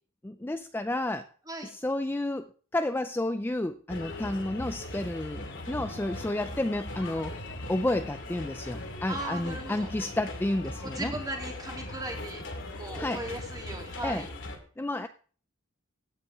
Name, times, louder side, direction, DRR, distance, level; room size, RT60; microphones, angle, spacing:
voice 1, 0.2-1.2 1.6-7.3 7.7-11.1 13.0-13.2 14.0-14.3 14.8-15.1, left 1 dB, 10° left, 9 dB, 0.4 m, -31 dB
sound 1, 3.9-14.6, left 2 dB, 60° left, 2.3 m, -39 dB
voice 2, 9.1-9.9 10.8-12.4 12.7-14.3, right 1 dB, 20° right, 1 dB, 3.0 m, -37 dB
15.5 x 9.2 x 3.6 m, 0.43 s
head